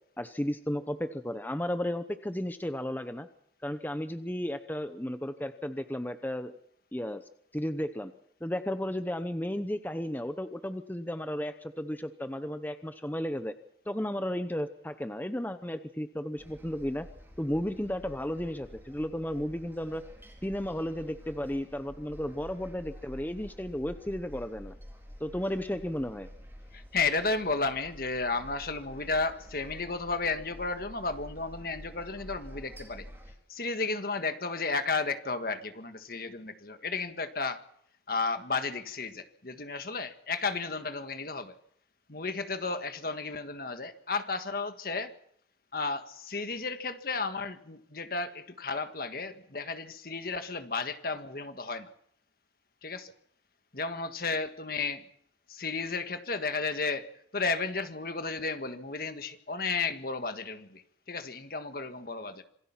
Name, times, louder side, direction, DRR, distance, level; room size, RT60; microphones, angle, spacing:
voice 1, 0.2-3.3 3.6-6.5 6.9-7.2 7.5-8.1 8.4-13.5 13.9-17.1 17.4-20.0 20.4-24.7 25.2-26.3, equal, 10° left, 9 dB, 0.8 m, -34 dB
sound 1, 16.4-33.3, equal, 15° right, 4.6 m, -49 dB
voice 2, 26.7-33.1 33.5-37.6 38.1-41.5 42.1-45.1 45.7-51.9 52.8-53.1 53.7-55.0 55.5-60.8 61.1-62.4, left 4 dB, 55° left, 8 dB, 1.6 m, -33 dB
26.5 x 18.5 x 5.8 m, 0.69 s
head